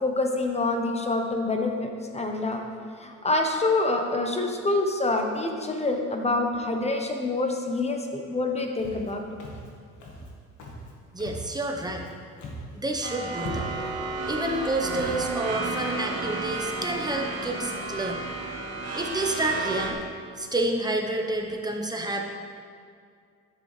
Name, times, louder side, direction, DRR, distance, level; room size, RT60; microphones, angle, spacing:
voice 1, 0.0-2.6 3.0-9.3, left 2 dB, 20° left, 3 dB, 1.0 m, -26 dB
Walk footsteps, 8.8-9.1 9.4-9.7 10.0-10.3 10.6-10.9 11.2-12.1 12.4-12.7 13.0-13.1 13.4-13.9 14.4-14.6 14.9-15.2, equal, 80° left, 1.6 m, -39 dB
voice 2, 11.1-12.1 12.7-13.7 14.2-18.2 18.9-20.0 20.4-22.2, right 1 dB, 15° right, 1 dB, 1.0 m, -29 dB
sound 1, 13.0-19.9, right 3 dB, 55° right, 1.2 m, -32 dB
10.5 x 6.9 x 3.3 m, 2.2 s
cardioid pair, 90°, 30 cm